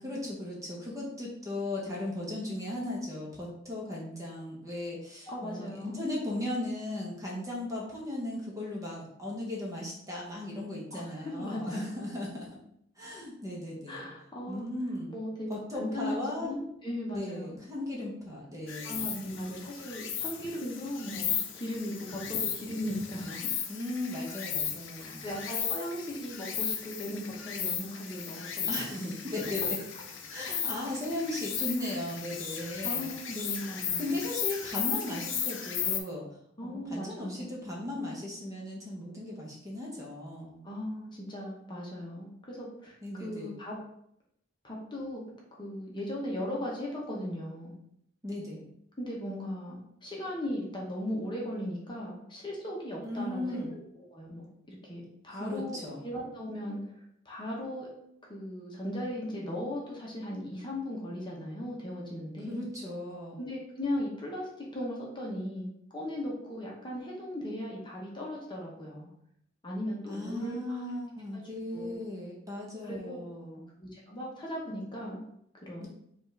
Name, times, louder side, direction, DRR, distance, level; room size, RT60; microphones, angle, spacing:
voice 1, 0.0-12.5 13.0-14.1 14.5-15.2 15.5-16.6 17.1-19.3 23.7-25.5 28.7-29.0 29.3-29.8 30.3-33.2 34.0-40.6 43.0-43.5 48.2-48.7 53.0-53.7 55.3-56.0 62.5-63.4 70.1-73.7 75.8-75.9, left 1 dB, 20° right, -3 dB, 1.0 m, -37 dB
voice 2, 5.3-6.0 10.9-11.8 13.9-14.7 15.1-15.5 15.7-17.6 18.8-23.5 25.0-29.1 31.8-32.0 32.8-34.2 36.6-37.5 40.6-43.7 44.6-45.2 45.6-47.7 49.0-56.8 57.2-57.9 58.3-62.6 63.4-69.1 69.6-70.8 71.7-71.9 72.9-73.2 73.8-75.2 75.6-75.9, left 1 dB, 25° left, -3 dB, 0.9 m, -37 dB
Insect, 18.7-36.0, left 8 dB, 80° left, 0.6 m, -35 dB
5.0 x 2.5 x 3.3 m, 0.73 s
head